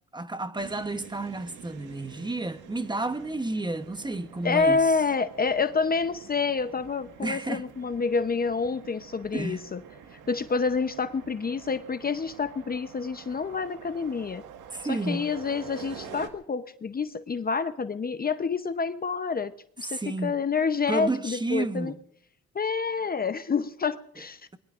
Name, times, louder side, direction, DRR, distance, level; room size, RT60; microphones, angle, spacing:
voice 1, 0.1-4.8 7.2-7.6 9.3-9.6 14.7-15.3 19.8-20.3 20.9-22.0, right 2 dB, 15° right, 1.0 m, -31 dB
sound 1, 0.6-16.3, right 7 dB, 85° right, 1.8 m, -47 dB
voice 2, 4.4-9.8 10.3-14.4 14.9-19.5 19.8-21.9 22.5-24.6, left 5 dB, 30° left, 0.8 m, -28 dB
25.5 x 21.5 x 2.5 m
cardioid pair, 90°, 30 cm